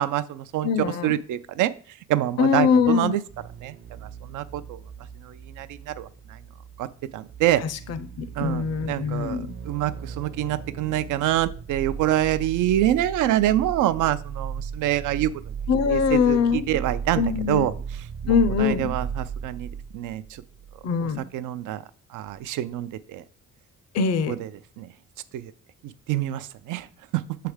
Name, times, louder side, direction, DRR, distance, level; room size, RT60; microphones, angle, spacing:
voice 1, 0.0-0.7 1.0-1.7 2.1-3.2 3.6-3.8 4.0-4.8 5.2-6.4 6.8-6.9 7.1-7.6 8.3-9.4 9.6-15.3 15.9-17.7 18.2-20.4 21.0-21.8 22.1-23.2 24.3-24.5 24.8-24.9 25.3-25.5 25.8-26.9 27.1-27.2, right 13 dB, 85° right, 13 dB, 0.5 m, -26 dB
voice 2, 0.6-1.1 2.4-3.2 7.6-9.5 15.7-16.7 17.2-17.7 18.3-18.9 20.8-21.2 23.9-24.4, left 6 dB, 55° left, 12 dB, 0.6 m, -23 dB
sound 1, 3.3-20.8 21.1-21.2, right 6 dB, 40° right, 0.6 m, -36 dB
7.0 x 3.4 x 4.9 m, 0.44 s
cardioid pair, 90°, 30 cm